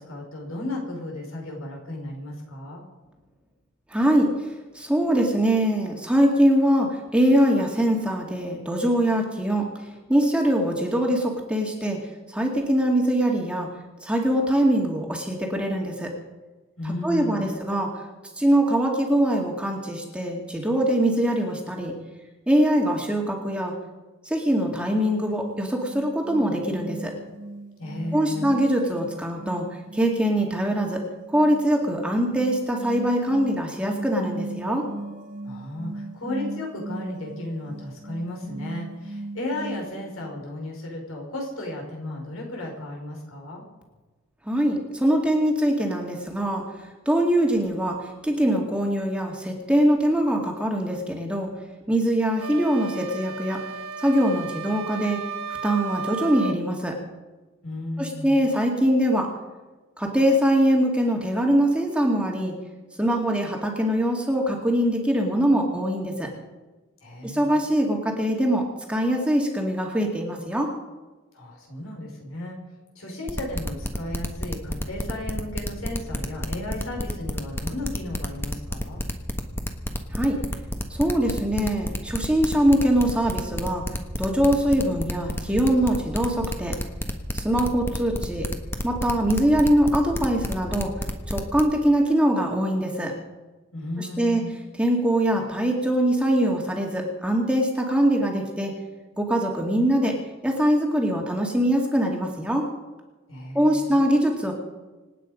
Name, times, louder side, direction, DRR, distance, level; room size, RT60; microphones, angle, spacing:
voice 1, 0.0-2.8 16.8-17.5 27.8-28.5 35.4-43.7 57.6-58.4 67.0-67.6 71.3-72.6 73.0-79.0 93.7-94.6 103.3-104.0, left 1 dB, 80° left, 0 dB, 5.4 m, -34 dB
voice 2, 3.9-4.3 4.7-9.7 10.1-12.0 12.3-13.7 14.0-16.1 17.0-17.9 18.4-21.9 22.5-23.7 24.2-27.1 28.1-29.7 29.9-31.0 31.3-34.9 44.5-46.6 47.1-51.5 51.9-53.6 54.0-55.2 55.6-57.0 58.0-59.3 60.0-62.5 63.0-66.3 67.2-70.7 80.1-80.4 80.9-83.8 84.2-86.7 87.3-88.5 88.8-90.9 91.3-93.1 94.0-94.4 94.8-98.7 99.2-100.1 100.4-102.6 103.5-104.5, equal, 5° right, 0 dB, 2.1 m, -23 dB
sound 1, 25.2-39.8, right 2 dB, 40° right, 1.4 m, -38 dB
sound 2, 52.4-56.6, right 5 dB, 80° right, 0.9 m, -34 dB
sound 3, 73.3-91.6, left 1 dB, 10° left, 1.4 m, -29 dB
27.0 x 9.2 x 5.2 m, 1.2 s
head